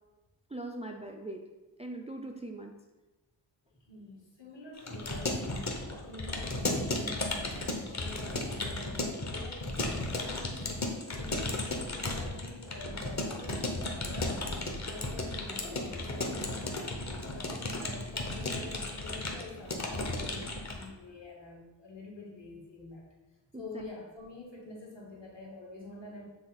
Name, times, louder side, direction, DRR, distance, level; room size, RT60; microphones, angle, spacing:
voice 1, 0.5-1.5 1.8-2.8 23.5-23.9, right 2 dB, 15° right, 2 dB, 0.3 m, -41 dB
voice 2, 3.7-9.7 9.9-14.5 14.9-23.1 23.6-26.2, left 2 dB, 65° left, -3 dB, 2.0 m, -47 dB
Keyboard (musical) / Computer keyboard, 4.8-20.9, left 2 dB, 35° left, 0.9 m, -35 dB
6.8 x 3.6 x 3.9 m, 1.1 s
wide cardioid pair, 105°, 46 cm